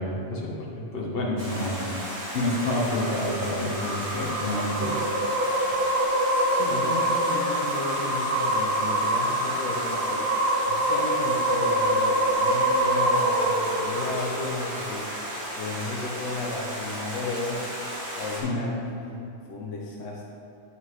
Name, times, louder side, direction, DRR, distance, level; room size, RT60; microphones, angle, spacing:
voice 1, 0.0-5.2 6.5-6.6 18.4-18.7, left 1 dB, 50° left, -3 dB, 1.3 m, -29 dB
Stream, 1.4-18.4, equal, 65° right, 2.3 m, -35 dB
Uknown Species, 2.8-15.3, right 1 dB, 45° right, 1.4 m, -25 dB
voice 2, 6.5-10.3 10.7-15.1 15.5-17.7 18.2-18.8 19.1-20.3, left 3 dB, 80° left, -1 dB, 1.0 m, -34 dB
8.9 x 5.5 x 3.1 m, 2.5 s
omnidirectional pair, 1.2 m